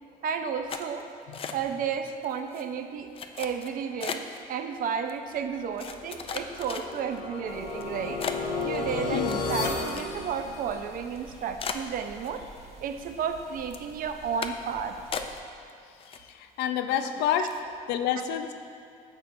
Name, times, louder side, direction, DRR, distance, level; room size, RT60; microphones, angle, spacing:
voice 1, 0.2-1.1 1.5-3.1 3.4-8.2 8.6-12.4 12.8-15.0, right 7 dB, 55° right, 7 dB, 0.5 m, -32 dB
sound 1, 0.7-1.9 2.2-2.6 3.1-4.4 5.1-5.2 5.8-7.2 7.7-7.8 8.2-10.4 10.7-10.8 11.2-11.3 11.6-12.7 13.0-13.4 13.7-13.9 14.4-14.7 15.1-15.7 16.0-16.6 17.0-17.1 17.4-17.7, left 6 dB, 35° left, 0.4 m, -37 dB
sound 2, 5.8-11.0, left 3 dB, 65° left, 1.0 m, -33 dB
sound 3, 7.5-15.4, right 2 dB, 40° right, 1.0 m, -50 dB
voice 2, 16.0-17.5 17.9-18.5, left 9 dB, 90° left, 8 dB, 0.5 m, -29 dB
9.7 x 6.7 x 2.6 m, 2.5 s
cardioid pair, 110°, 17 cm